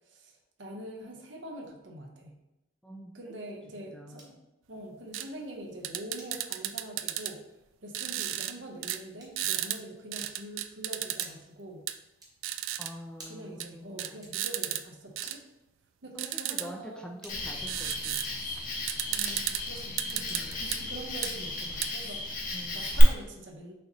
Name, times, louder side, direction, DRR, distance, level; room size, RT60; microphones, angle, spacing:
voice 1, 0.0-2.4 3.1-4.3 4.7-7.4 7.8-11.9 13.3-15.4 16.0-17.1 19.1-23.7, right 1 dB, 70° right, 2 dB, 0.8 m, -44 dB
voice 2, 2.8-3.5 3.8-4.3 12.8-14.2 16.2-18.2 20.1-20.6 21.4-21.8 22.5-23.0, equal, 5° left, 1 dB, 0.3 m, -46 dB
sound 1, 4.1-4.5 5.2-5.5 6.1-6.6 7.1-7.4 8.2-8.5 9.2-9.5 10.2-10.6 11.2-11.6 12.2-12.5 13.2-13.6 14.2-14.6 15.2-15.5 16.2-16.6 17.2-17.6 18.2-18.5 19.2-19.6 20.2-20.5 21.2-21.5, right 2 dB, 20° right, 0.9 m, -50 dB
sound 2, 5.1-5.3 5.8-7.3 7.9-8.5 8.8-9.0 9.4-9.8 10.1-11.3 11.9-12.0 12.4-12.9 13.6-13.7 14.0-14.8 15.2-15.4 16.2-16.7 17.7-18.3 18.6-18.7 18.9-19.6 20.0-20.8 21.2-21.3 21.8-21.9, right 13 dB, 85° right, 0.3 m, -33 dB
Cricket, 17.3-23.0, left 2 dB, 45° left, 0.8 m, -35 dB
6.3 x 3.0 x 2.7 m, 0.97 s
head